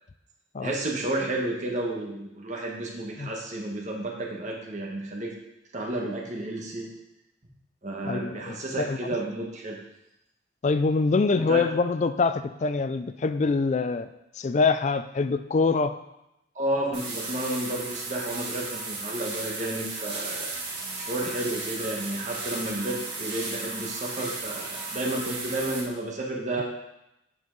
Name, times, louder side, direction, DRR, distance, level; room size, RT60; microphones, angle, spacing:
voice 1, 0.6-5.3 5.7-6.9 7.8-9.8 11.5-11.6 16.5-20.5 21.0-26.6, right 1 dB, 40° right, -2 dB, 1.4 m, -31 dB
voice 2, 8.0-9.0 10.6-14.1 14.4-15.9, left 4 dB, 35° left, 11 dB, 0.3 m, -24 dB
sound 1, 16.9-25.8, right 3 dB, 60° right, 2.0 m, -35 dB
7.9 x 5.5 x 3.9 m, 0.87 s
head